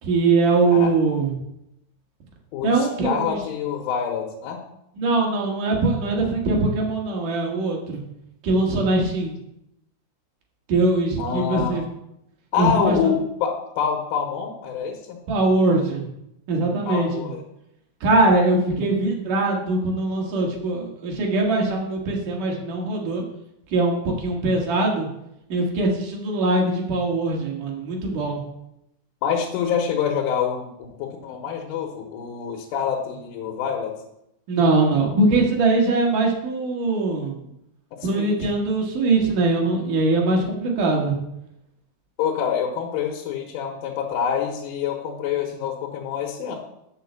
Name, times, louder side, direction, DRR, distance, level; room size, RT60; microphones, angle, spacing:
voice 1, 0.0-1.3 2.6-3.4 5.0-8.0 8.4-9.4 10.7-11.8 12.6-13.0 15.3-16.0 16.5-17.3 18.0-23.2 23.7-25.1 25.5-28.4 34.5-37.3 38.0-41.2, right 2 dB, 55° right, 0 dB, 2.6 m, -21 dB
voice 2, 2.5-4.6 11.2-11.8 12.5-15.2 16.9-17.4 29.2-33.9 37.4-37.5 38.0-38.4 39.8-39.9 42.2-46.6, left 7 dB, 85° left, 1 dB, 3.7 m, -26 dB
8.9 x 6.5 x 7.1 m, 0.82 s
omnidirectional pair, 5.5 m